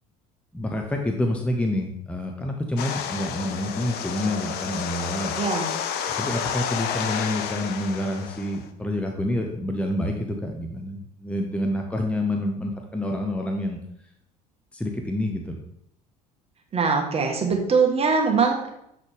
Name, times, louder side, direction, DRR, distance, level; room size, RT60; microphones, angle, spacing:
voice 1, 0.5-5.3 6.2-13.8 14.7-15.6, left 1 dB, 5° left, 2 dB, 0.8 m, -28 dB
sound 1, 2.8-8.6, left 8 dB, 55° left, 0.7 m, -30 dB
voice 2, 5.4-5.7 16.7-18.7, right 5 dB, 30° right, 2 dB, 1.2 m, -22 dB
7.3 x 4.1 x 3.4 m, 0.75 s
hypercardioid pair, 70°, 20 cm